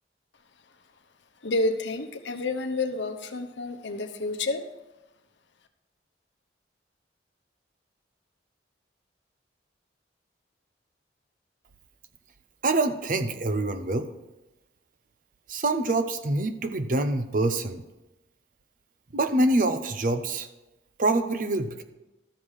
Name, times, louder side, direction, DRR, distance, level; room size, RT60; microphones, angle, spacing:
voice 1, 1.4-4.7, left 2 dB, 90° left, 6 dB, 0.9 m, -29 dB
voice 2, 12.6-14.1 15.5-17.8 19.1-20.5 21.0-21.8, right 2 dB, 50° right, 9 dB, 0.7 m, -25 dB
12.5 x 4.9 x 5.6 m, 0.99 s
head